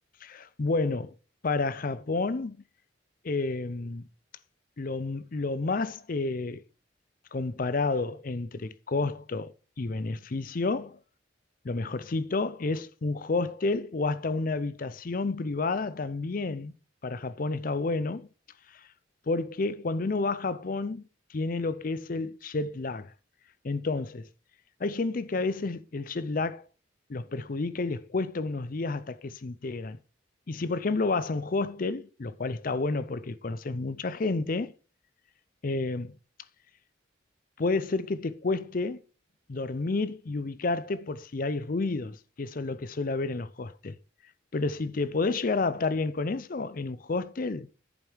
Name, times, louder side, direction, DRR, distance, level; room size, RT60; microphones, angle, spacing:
voice 1, 0.2-1.1 1.4-2.6 3.2-4.0 4.8-6.6 7.3-11.0 11.6-16.7 17.0-18.3 19.3-21.0 21.3-23.1 23.6-24.3 24.8-26.6 27.1-30.0 30.5-34.7 35.6-36.1 37.6-39.0 39.5-44.0 44.5-47.7, left 3 dB, 45° left, 0.5 m, -30 dB
11.0 x 5.3 x 4.6 m
head